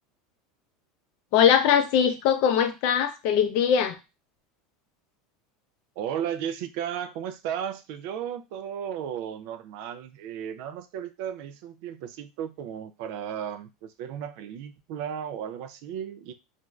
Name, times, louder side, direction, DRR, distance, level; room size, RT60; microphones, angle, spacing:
voice 1, 1.3-4.0, left 8 dB, 60° left, 0.5 m, -21 dB
voice 2, 6.0-16.3, right 9 dB, 65° right, 0.4 m, -34 dB
2.5 x 2.3 x 3.0 m
supercardioid pair, 135°, 0 cm